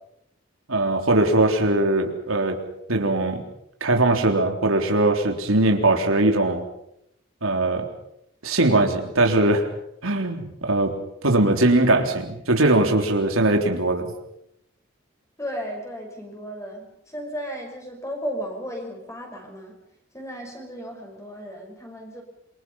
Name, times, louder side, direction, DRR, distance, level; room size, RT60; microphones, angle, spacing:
voice 1, 0.7-2.6 2.9-3.4 3.8-6.6 7.4-7.9 8.4-9.6 10.0-10.9 11.2-14.1, right 2 dB, 90° right, 3 dB, 3.7 m, -20 dB
voice 2, 15.4-19.8 20.1-22.2, equal, 15° left, 2 dB, 5.9 m, -34 dB
27.0 x 24.5 x 5.7 m, 0.78 s
head